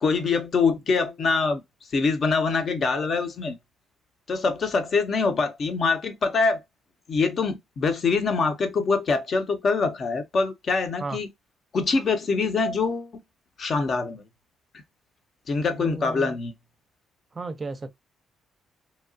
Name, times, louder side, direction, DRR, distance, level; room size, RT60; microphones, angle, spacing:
voice 1, 0.0-1.6 1.9-3.6 4.3-6.6 7.1-11.3 11.7-13.2 13.6-14.2 15.5-16.5, left 4 dB, 50° left, 0.7 m, -24 dB
voice 2, 15.8-16.4 17.3-17.9, right 3 dB, 30° right, 0.5 m, -34 dB
2.8 x 2.3 x 2.5 m
cardioid pair, 90°, 0 cm